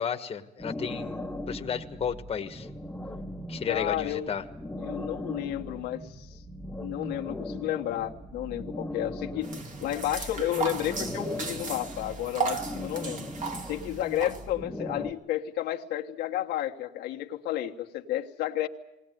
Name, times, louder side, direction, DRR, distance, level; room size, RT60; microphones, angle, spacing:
voice 1, 0.0-2.7 3.5-4.4, left 7 dB, 35° left, 6 dB, 1.4 m, -33 dB
sound 1, 0.6-15.1, left 1 dB, 5° left, 1.3 m, -39 dB
voice 2, 3.7-4.3 4.8-6.4 6.8-9.5 9.8-13.3 13.6-18.7, left 13 dB, 85° left, 1 dB, 1.4 m, -32 dB
sound 2, 9.4-14.4, right 6 dB, 50° right, 2.4 m, -36 dB
20.0 x 19.0 x 9.2 m, 0.90 s
cardioid pair, 110°, 17 cm